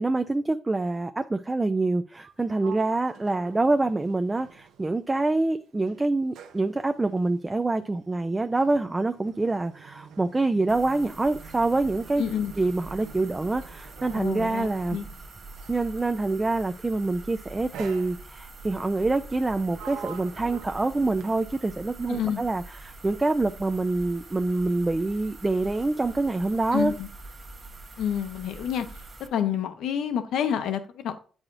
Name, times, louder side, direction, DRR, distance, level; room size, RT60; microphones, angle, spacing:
voice 1, 0.0-12.3 12.6-15.0 15.7-26.9, right 2 dB, 20° right, 0.4 m, -26 dB
Sliding door, 2.1-5.4 5.7-15.9 16.8-17.1 17.7-18.6 19.2-21.8, right 8 dB, 85° right, 0.7 m, -47 dB
sound 1, 10.7-29.3, right 2 dB, 35° right, 0.9 m, -45 dB
voice 2, 12.2-12.5 14.1-15.1 22.1-22.4 26.7-27.1 28.0-28.9 29.3-31.1, left 9 dB, 80° left, 0.8 m, -28 dB
8.5 x 4.9 x 2.5 m
cardioid pair, 90°, 0 cm